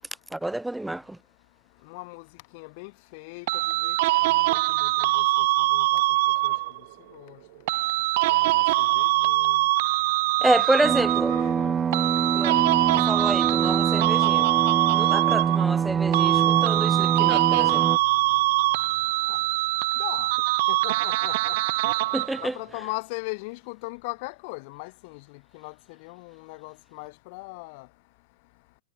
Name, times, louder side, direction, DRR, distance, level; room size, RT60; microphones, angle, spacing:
voice 1, 0.3-1.2 10.4-11.4 12.3-14.5 14.9-18.1 22.1-22.6, right 1 dB, 5° right, 2.9 m, -28 dB
voice 2, 1.8-2.3 2.5-3.5 3.8-4.0 4.2-5.5 5.7-6.0 6.4-6.5 7.1-7.4 8.3-9.6 10.4-11.8 19.2-19.4 19.9-20.3 20.7-21.6 22.4-25.7 26.0-27.9, left 28 dB, 45° left, 8.0 m, -39 dB
sound 1, 3.5-6.8 7.7-11.5 11.9-15.9 16.1-22.5, right 19 dB, 50° right, 2.0 m, -23 dB
sound 2, 10.8-18.0, right 7 dB, 20° right, 0.3 m, -25 dB
figure-of-eight pair, 90°, 0 cm